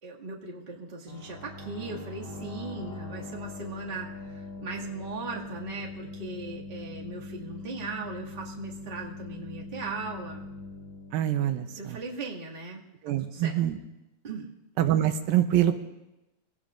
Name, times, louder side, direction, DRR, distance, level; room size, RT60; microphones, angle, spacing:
voice 1, 0.0-10.4 11.4-11.5 11.8-12.8 13.2-13.6 14.2-14.5, right 3 dB, 20° right, -4 dB, 1.4 m, -38 dB
sound 1, 1.1-12.5, left 2 dB, 50° left, 2.4 m, -42 dB
voice 2, 11.1-12.0 13.0-13.8 14.8-15.7, right 11 dB, 80° right, 8 dB, 2.5 m, -25 dB
24.5 x 18.0 x 2.5 m, 0.94 s
omnidirectional pair, 4.2 m